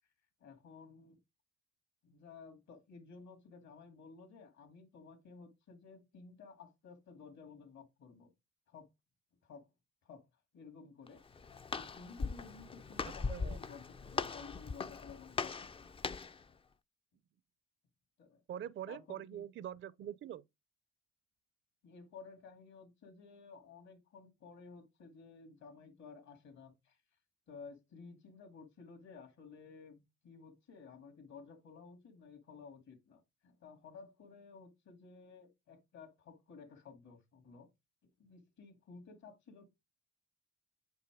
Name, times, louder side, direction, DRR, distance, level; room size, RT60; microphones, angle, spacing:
voice 1, 0.4-1.2 2.0-8.3 8.7-8.9 9.4-9.7 10.0-10.3 10.5-11.4 11.7-15.9 18.2-18.4 18.9-19.5 21.8-27.0 27.5-37.7 38.0-39.7, left 5 dB, 65° left, 2.3 m, -54 dB
Walk footsteps, 11.1-16.4, left 4 dB, 20° left, 0.3 m, -40 dB
voice 2, 13.0-13.6 18.5-20.4, right 10 dB, 40° right, 0.4 m, -44 dB
8.0 x 3.0 x 4.8 m
cardioid pair, 90°, 30 cm